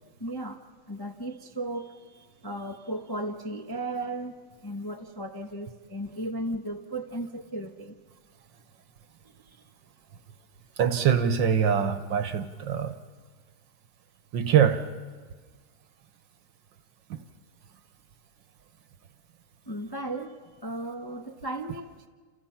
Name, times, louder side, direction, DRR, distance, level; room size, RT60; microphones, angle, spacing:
voice 1, 0.0-8.0 9.4-9.6 19.7-22.1, right 1 dB, 20° left, 3 dB, 0.7 m, -36 dB
voice 2, 10.8-12.9 14.3-14.8, right 8 dB, 65° right, 10 dB, 1.6 m, -23 dB
29.5 x 28.5 x 5.8 m, 1.5 s
omnidirectional pair, 2.4 m